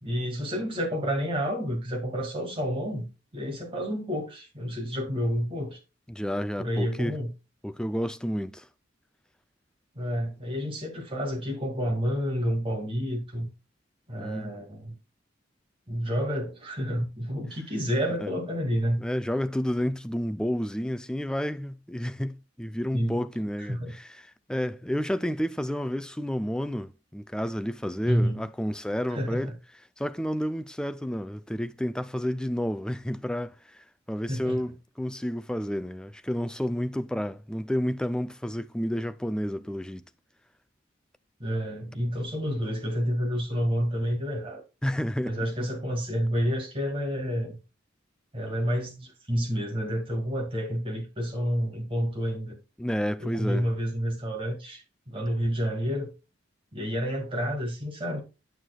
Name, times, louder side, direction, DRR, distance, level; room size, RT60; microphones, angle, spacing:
voice 1, 0.0-5.8 6.6-7.3 10.0-13.5 14.1-15.0 15.9-19.0 22.9-23.2 23.7-23.9 28.1-28.5 29.1-29.6 34.3-34.6 41.4-44.6 45.3-47.6 48.3-52.6 53.2-56.1 56.7-58.2, equal, 30° right, 2.0 m, -29 dB
voice 2, 6.1-7.2 7.6-8.7 14.2-14.5 18.2-18.3 19.0-29.5 30.0-40.0 44.8-45.7 52.8-53.7, equal, 5° left, 0.3 m, -30 dB
9.1 x 6.5 x 2.3 m
head